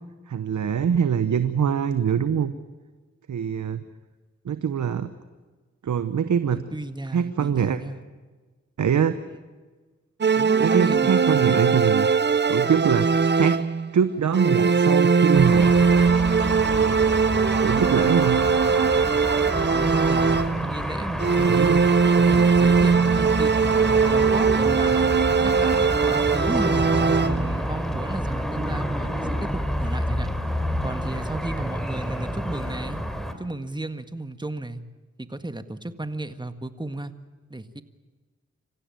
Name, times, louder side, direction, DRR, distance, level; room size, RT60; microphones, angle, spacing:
voice 1, 0.3-2.5 3.3-3.8 4.4-5.1 5.8-6.6 7.1-7.8 8.8-9.2 10.6-12.1 12.5-13.6 13.9-15.7 16.3-17.0 17.6-18.4 21.4-21.9, right 7 dB, 80° right, 12 dB, 1.0 m, -23 dB
voice 2, 6.7-8.0 9.3-9.4 10.4-11.7 19.7-21.7 22.2-25.1 25.4-26.9 27.3-30.3 30.8-33.0 33.4-34.8 35.2-37.1 37.5-37.8, right 2 dB, 15° right, 10 dB, 1.8 m, -33 dB
sound 1, 10.2-13.9 14.3-20.8 21.2-27.6, right 5 dB, 35° right, 0.7 m, -20 dB
sound 2, 15.3-33.3, equal, ahead, 3.4 m, -29 dB
26.0 x 15.5 x 9.1 m, 1.4 s
cardioid pair, 45°, 29 cm